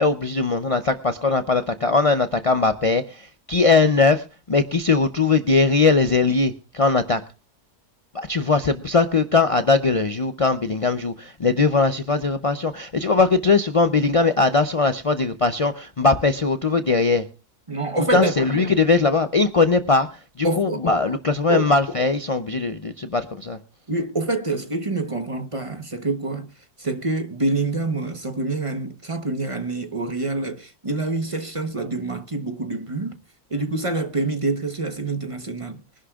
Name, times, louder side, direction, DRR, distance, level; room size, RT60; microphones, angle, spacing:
voice 1, 0.0-7.2 8.1-17.3 18.1-23.6, left 4 dB, 65° left, 0.3 m, -20 dB
voice 2, 17.7-18.3 20.4-20.8 21.5-21.7 23.9-26.5 26.8-33.2 33.5-35.8, right 2 dB, 25° right, 1.0 m, -26 dB
23.0 x 11.0 x 2.4 m
omnidirectional pair, 1.6 m